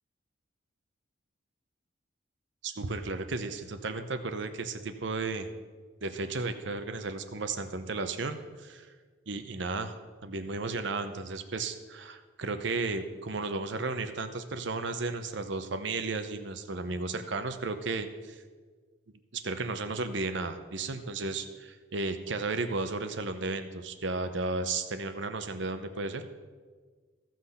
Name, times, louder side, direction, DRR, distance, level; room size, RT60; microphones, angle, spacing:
voice 1, 2.6-5.5 6.0-8.9 9.3-18.4 19.3-26.2, right 3 dB, 65° right, 9 dB, 0.8 m, -34 dB
14.5 x 6.0 x 5.7 m, 1.5 s
head